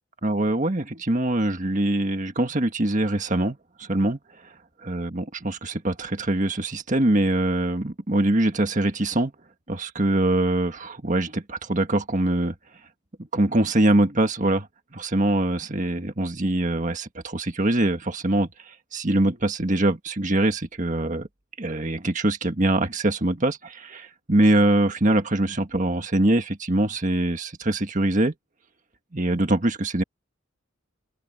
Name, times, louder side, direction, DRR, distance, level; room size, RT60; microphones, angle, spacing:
voice 1, 0.2-4.2 4.8-9.3 9.7-12.5 13.3-14.7 14.9-21.3 21.6-28.3 29.1-30.0, right 1 dB, 40° right, 1.6 m, -23 dB
open air
head